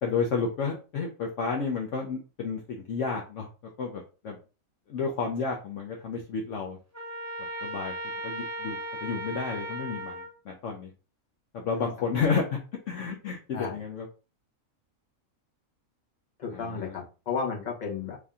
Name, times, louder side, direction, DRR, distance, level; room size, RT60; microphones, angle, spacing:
voice 1, 0.0-3.5 3.8-4.4 4.9-6.8 7.6-7.9 8.2-10.9 11.5-12.6 12.9-14.1 16.5-17.0, left 5 dB, 65° left, 1 dB, 0.9 m, -31 dB
Trumpet, 6.9-10.3, right 1 dB, 25° right, 0.3 m, -36 dB
voice 2, 16.4-18.2, left 5 dB, 35° left, -2 dB, 1.1 m, -33 dB
3.3 x 2.7 x 3.5 m, 0.34 s
omnidirectional pair, 1.5 m